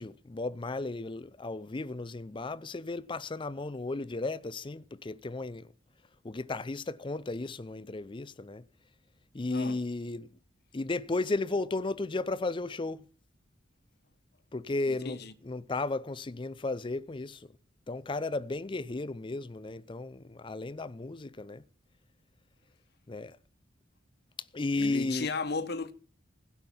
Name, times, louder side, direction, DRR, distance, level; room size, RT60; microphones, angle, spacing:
voice 1, 0.0-5.7 6.2-8.6 9.3-10.4 10.7-13.0 14.5-17.5 17.9-21.6 23.1-23.4 24.5-25.3, left 2 dB, 25° left, 0.5 m, -34 dB
voice 2, 9.5-9.8 14.9-15.3 24.8-25.9, left 4 dB, 55° left, 1.2 m, -35 dB
16.0 x 5.8 x 7.0 m
head